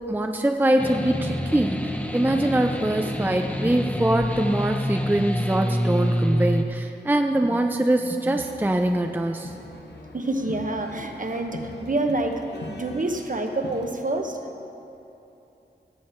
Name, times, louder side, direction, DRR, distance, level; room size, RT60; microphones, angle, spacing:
voice 1, 0.1-9.5, right 1 dB, 10° right, 5 dB, 0.5 m, -23 dB
sound 1, 0.8-6.6, equal, 10° left, 0.9 m, -27 dB
voice 2, 3.0-3.4 6.3-6.4 10.1-12.4 12.7-14.4, right 2 dB, 45° right, 4 dB, 1.1 m, -28 dB
sound 2, 8.3-13.9, left 2 dB, 70° left, 1.0 m, -42 dB
17.5 x 7.5 x 4.5 m, 2.9 s
wide cardioid pair, 65°, 18 cm